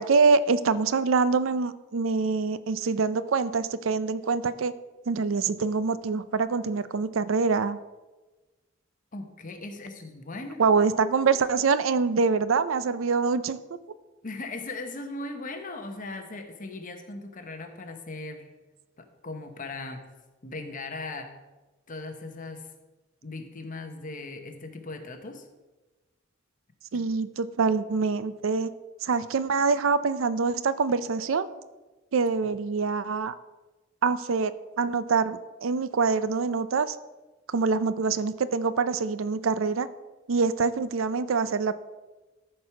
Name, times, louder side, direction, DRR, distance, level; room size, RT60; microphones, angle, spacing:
voice 1, 0.0-4.7 5.1-7.8 10.6-13.6 26.9-28.7 29.0-31.5 32.1-33.3 34.0-37.0 37.5-39.9 40.3-41.8, right 4 dB, 80° right, 15 dB, 0.5 m, -25 dB
voice 2, 9.1-10.6 14.2-18.5 19.0-20.0 20.4-21.3 21.9-22.7 23.2-25.5 26.9-27.0, left 2 dB, 45° left, 6 dB, 1.1 m, -38 dB
13.5 x 4.7 x 5.8 m, 1.2 s
head